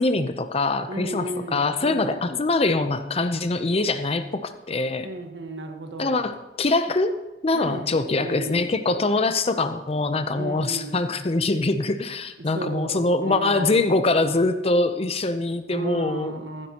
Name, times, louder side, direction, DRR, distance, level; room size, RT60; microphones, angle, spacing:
voice 1, 0.0-5.1 6.0-7.1 7.4-16.4, left 2 dB, 35° left, 10 dB, 0.6 m, -23 dB
voice 2, 0.9-2.2 5.0-6.3 7.5-8.0 8.2-8.7 10.3-11.0 12.4-13.9 15.7-16.7, right 2 dB, 80° right, 5 dB, 1.4 m, -34 dB
15.0 x 12.0 x 2.9 m, 1.0 s
head